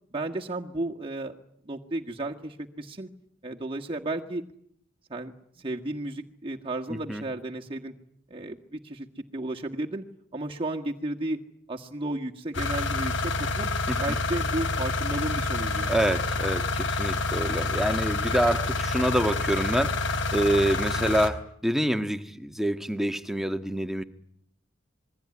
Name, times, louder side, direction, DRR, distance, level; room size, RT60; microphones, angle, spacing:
voice 1, 0.1-1.3 1.7-3.1 3.4-4.4 5.1-7.9 8.3-9.1 9.3-10.1 10.3-11.4 11.7-13.7 14.0-15.9, right 2 dB, 30° right, 1 dB, 1.7 m, -33 dB
voice 2, 6.9-7.2 13.9-14.0 15.9-24.0, right 1 dB, ahead, 9 dB, 1.6 m, -27 dB
sound 1, 12.5-21.3, left 3 dB, 70° left, 3.5 m, -28 dB
27.0 x 22.0 x 9.7 m, 0.68 s
head